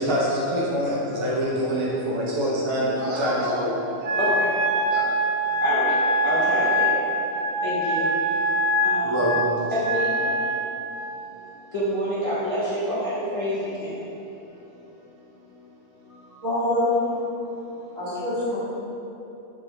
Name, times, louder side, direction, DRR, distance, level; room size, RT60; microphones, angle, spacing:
voice 1, 0.0-3.7 4.0-4.1 4.9-5.1 9.0-9.5, equal, 35° right, -6 dB, 0.5 m, -25 dB
voice 2, 3.9-5.1 5.4-9.3 9.7-10.2 10.7-14.3 14.6-15.5 15.8-16.4 17.4-18.0, equal, 40° left, -11 dB, 0.5 m, -30 dB
Wind instrument woodwind instrument, 4.0-10.6, right 1 dB, 55° right, 0.9 m, -24 dB
voice 3, 16.4-17.0 17.9-18.6, left 2 dB, 75° right, -13 dB, 2.1 m, -24 dB
3.7 x 3.2 x 3.0 m, 3.0 s
omnidirectional pair, 1.3 m